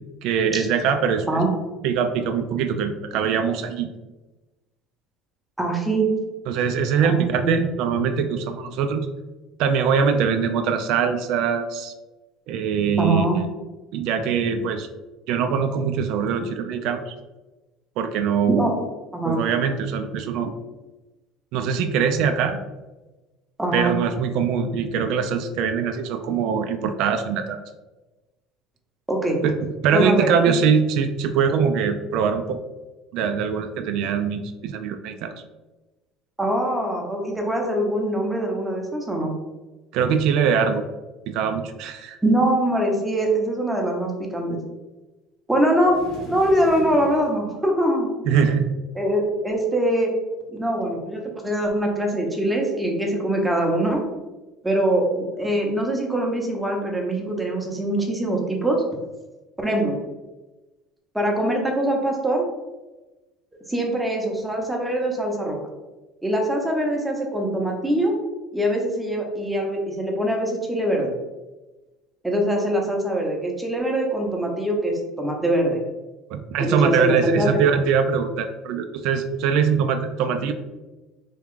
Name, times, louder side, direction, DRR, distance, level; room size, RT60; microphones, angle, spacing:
voice 1, 0.2-1.3 1.8-3.9 6.5-9.1 9.6-11.9 12.5-13.3 13.9-14.9 15.3-17.1 18.0-18.7 19.2-20.5 21.5-22.6 23.7-27.6 29.4-29.5 29.8-32.6 33.1-35.3 39.9-40.8 41.3-42.2 48.3-48.7 76.3-80.5, right 6 dB, 70° right, 7 dB, 0.3 m, -22 dB
voice 2, 5.6-6.1 7.0-7.6 13.0-13.4 18.5-18.7 19.1-19.4 23.6-23.9 29.1-29.4 29.9-30.5 36.4-39.3 42.2-44.6 45.5-46.0 46.3-48.1 49.0-50.1 50.5-54.0 54.6-58.8 59.6-60.0 61.1-62.5 63.7-65.6 66.2-68.2 68.5-71.1 72.2-75.8 76.6-77.7, right 1 dB, 5° right, 0 dB, 0.7 m, -23 dB
sound 1, 45.8-47.4, equal, 70° left, 1.4 m, -38 dB
3.4 x 2.3 x 3.6 m, 1.1 s
cardioid pair, 125°, 0 cm